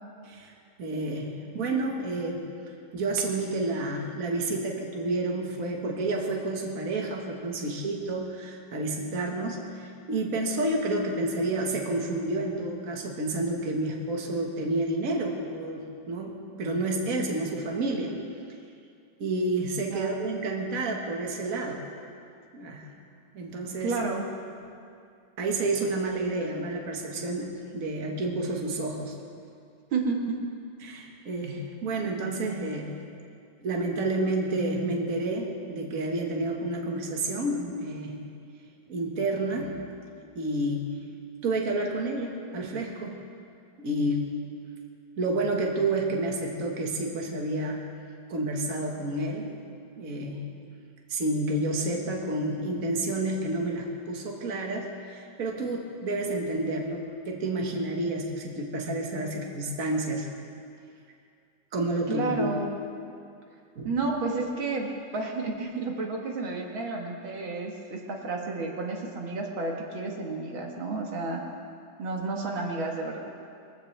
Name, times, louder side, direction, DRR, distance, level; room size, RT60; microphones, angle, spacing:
voice 1, 0.8-2.4 2.9-18.2 19.2-21.8 22.5-22.9 23.3-24.0 25.4-29.1 30.8-33.0 33.6-38.2 38.9-39.8 40.4-40.9 41.4-43.2 43.8-44.3 45.2-47.9 48.3-49.5 50.0-50.5 51.1-60.3 61.7-62.5 63.8-64.0, right 2 dB, 45° right, 0 dB, 1.8 m, -30 dB
voice 2, 23.8-24.3 29.9-30.4 62.1-62.7 63.8-71.4 72.0-73.3, right 3 dB, 80° right, 0 dB, 2.3 m, -31 dB
22.0 x 15.0 x 3.3 m, 2.4 s
omnidirectional pair, 2.2 m